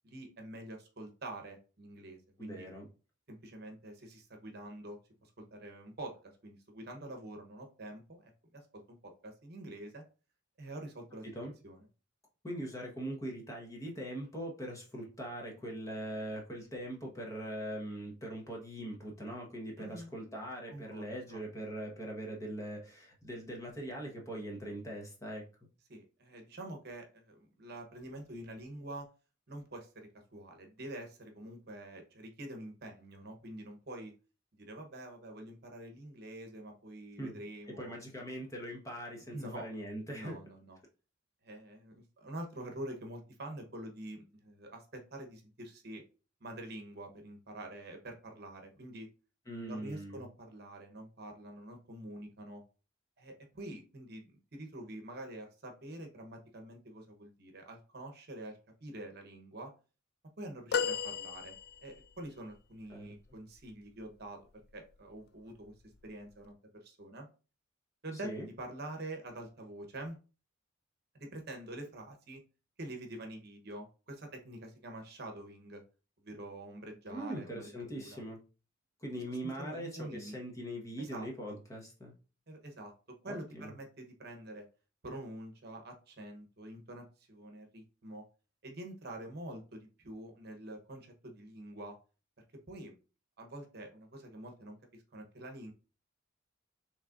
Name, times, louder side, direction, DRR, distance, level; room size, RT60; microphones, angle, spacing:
voice 1, 0.0-2.7 3.3-10.0 10.6-11.3 11.6-11.8 19.8-20.1 20.7-21.4 25.9-29.1 29.5-34.1 34.5-38.0 39.3-39.7 40.1-40.8 41.4-46.0 46.4-49.1 49.7-52.6 53.2-59.7 60.4-61.6 61.8-64.4 64.7-65.7 66.0-66.5 66.8-67.3 68.0-70.2 71.1-72.4 72.8-75.8 76.2-78.2 79.1-80.4 81.0-81.5 82.5-84.7 85.0-88.2 88.6-92.0 92.4-92.9 93.4-95.7, right 1 dB, 50° right, 4 dB, 1.0 m, -46 dB
voice 2, 2.4-2.8 11.2-11.5 12.4-25.5 37.2-37.4 37.7-40.4 49.5-50.2 62.9-63.1 68.2-68.5 77.1-78.4 79.0-82.1 83.2-83.7, right 1 dB, 15° left, -1 dB, 1.1 m, -41 dB
sound 1, 60.7-62.1 64.5-64.7 66.0-66.1, left 6 dB, 50° left, 0.3 m, -34 dB
6.4 x 3.2 x 2.5 m, 0.34 s
head